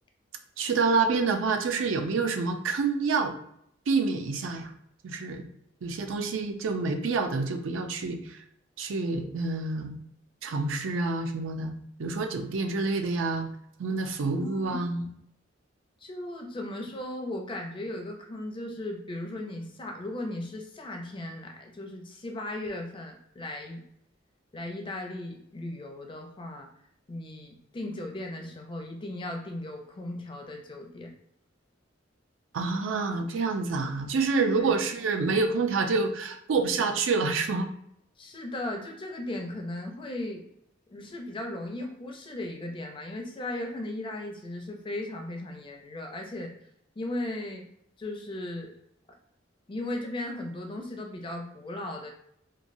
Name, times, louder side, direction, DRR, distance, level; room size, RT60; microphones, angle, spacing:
voice 1, 0.6-3.3 3.9-4.7 5.0-5.4 5.8-8.4 8.8-10.0 10.4-13.5 13.8-15.1 32.5-37.7, right 4 dB, 90° right, 5 dB, 0.4 m, -27 dB
voice 2, 14.4-14.8 16.0-23.8 24.5-26.7 27.1-31.1 34.6-34.7 38.2-40.4 40.9-46.5 47.0-47.6 48.0-48.7 49.7-52.1, left 1 dB, 25° left, 2 dB, 0.4 m, -37 dB
3.0 x 2.3 x 2.5 m, 0.71 s
head